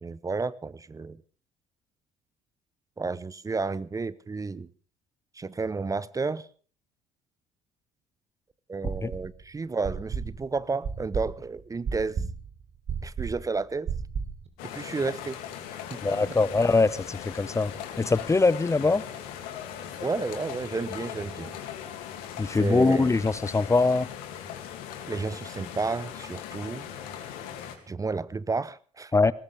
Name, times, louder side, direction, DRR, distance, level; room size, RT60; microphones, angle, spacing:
voice 1, 0.0-1.2 3.0-4.7 5.3-6.5 8.7-12.2 13.0-13.9 14.6-15.4 15.9-16.0 20.0-21.6 22.6-23.1 25.1-26.9 27.9-29.1, right 4 dB, 20° right, 0.8 m, -31 dB
sound 1, 8.8-9.4 9.8-14.5, right 6 dB, 40° right, 3.2 m, -33 dB
sound 2, 14.6-27.8, left 9 dB, 65° left, 2.5 m, -39 dB
voice 2, 16.0-17.7 18.0-19.0 22.4-24.1 29.1-29.3, left 3 dB, 20° left, 0.7 m, -22 dB
20.0 x 19.5 x 3.5 m
figure-of-eight pair, 50°, 16 cm